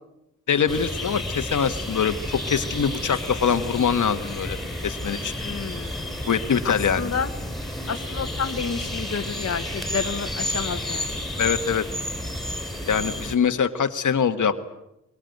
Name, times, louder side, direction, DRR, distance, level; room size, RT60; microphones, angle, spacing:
voice 1, 0.5-4.6 4.8-5.3 6.3-7.1 11.4-11.8 12.9-14.7, left 7 dB, 80° left, 8 dB, 1.5 m, -23 dB
sound 1, 0.7-13.4, left 1 dB, ahead, 4.5 m, -31 dB
voice 2, 5.4-6.1 6.6-7.3 7.9-11.2, left 6 dB, 55° left, 7 dB, 1.4 m, -30 dB
23.0 x 22.0 x 9.3 m, 0.86 s
wide cardioid pair, 125°, 30 cm